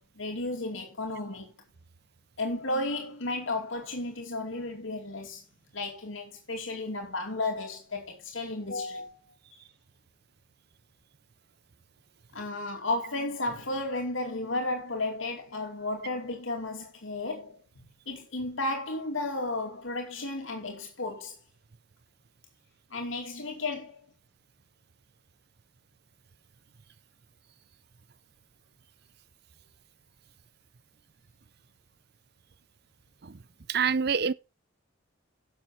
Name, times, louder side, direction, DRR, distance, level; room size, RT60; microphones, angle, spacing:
voice 1, 0.0-1.5 2.4-5.4 5.7-9.2 12.3-21.4 22.9-24.0, left 2 dB, 80° left, 2.5 m, -33 dB
voice 2, 33.7-34.3, right 6 dB, 55° right, 0.6 m, -26 dB
11.5 x 7.3 x 5.0 m
head